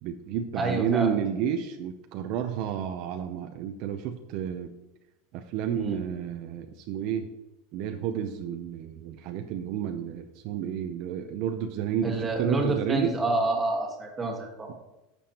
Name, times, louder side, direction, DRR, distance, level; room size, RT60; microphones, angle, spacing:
voice 1, 0.0-4.7 5.3-7.3 7.7-13.2, right 8 dB, 50° right, 6 dB, 0.6 m, -31 dB
voice 2, 0.5-1.2 5.7-6.0 12.0-14.7, right 2 dB, 15° right, 1 dB, 1.5 m, -28 dB
11.0 x 7.0 x 2.9 m, 1.0 s
supercardioid pair, 155°, 0 cm